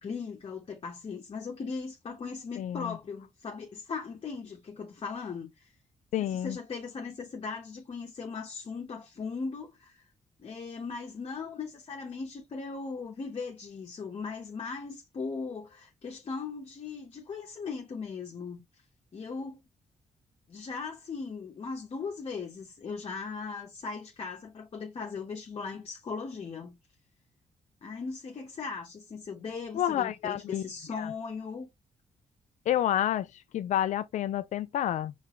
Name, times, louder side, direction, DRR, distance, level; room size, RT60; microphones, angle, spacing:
voice 1, 0.0-5.7 6.2-10.0 10.4-18.6 19.1-19.6 20.5-26.8 27.8-31.7, left 5 dB, 45° left, 1.2 m, -38 dB
voice 2, 2.6-3.0 6.1-6.6 29.7-30.6 31.0-31.1 32.7-35.1, left 11 dB, 75° left, 0.5 m, -29 dB
4.7 x 3.5 x 3.1 m
cardioid pair, 80°, 13 cm